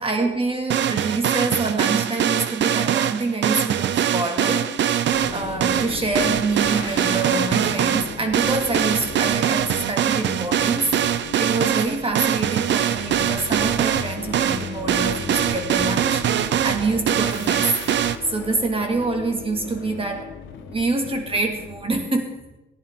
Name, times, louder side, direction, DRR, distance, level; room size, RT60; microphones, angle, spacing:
voice 1, 0.0-17.7 18.3-22.6, right 3 dB, 30° right, 4 dB, 2.1 m, -26 dB
sound 1, 0.7-18.1, right 10 dB, 65° right, 0.6 m, -22 dB
sound 2, 5.1-22.0, left 7 dB, 75° left, 1.2 m, -37 dB
15.0 x 10.5 x 3.7 m, 0.96 s
cardioid pair, 90°, 20 cm